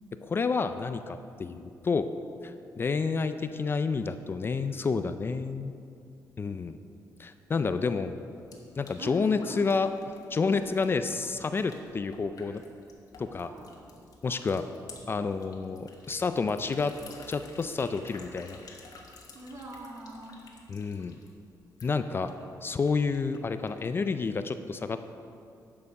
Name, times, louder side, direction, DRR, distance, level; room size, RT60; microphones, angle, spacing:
voice 1, 0.2-2.1 2.4-5.7 6.4-6.8 7.2-8.2 8.8-9.9 10.3-12.6 13.2-13.5 14.2-14.6 15.1-16.9 17.3-18.6 20.7-21.1 21.8-22.3 22.6-25.1, left 4 dB, 35° left, 10 dB, 0.4 m, -29 dB
sound 1, 8.4-24.0, left 4 dB, 60° left, 1.5 m, -53 dB
voice 2, 9.0-9.8 10.5-10.7 13.4-13.8 14.3-14.5 19.3-20.5, right 1 dB, 50° right, 0 dB, 1.8 m, -43 dB
10.5 x 6.8 x 5.3 m, 2.5 s
cardioid pair, 120°, 7 cm